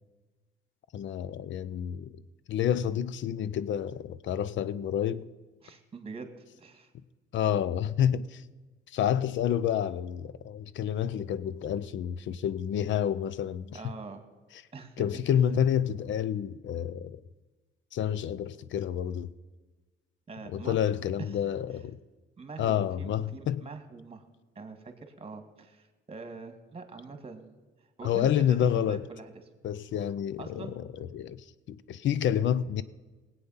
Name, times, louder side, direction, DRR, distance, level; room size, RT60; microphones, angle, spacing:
voice 1, 0.9-2.2 2.5-5.3 7.3-8.4 8.9-13.8 15.0-17.2 17.9-19.3 20.5-22.0 22.6-23.6 28.0-29.0 29.6-32.8, left 9 dB, 70° left, 0.6 m, -29 dB
voice 2, 5.6-6.9 13.7-14.2 14.7-15.0 20.3-20.8 21.2-21.3 22.4-24.3 24.6-27.6 28.0-29.3 30.4-30.7, right 4 dB, 30° right, 1.9 m, -43 dB
18.5 x 8.4 x 5.7 m
cardioid pair, 90°, 20 cm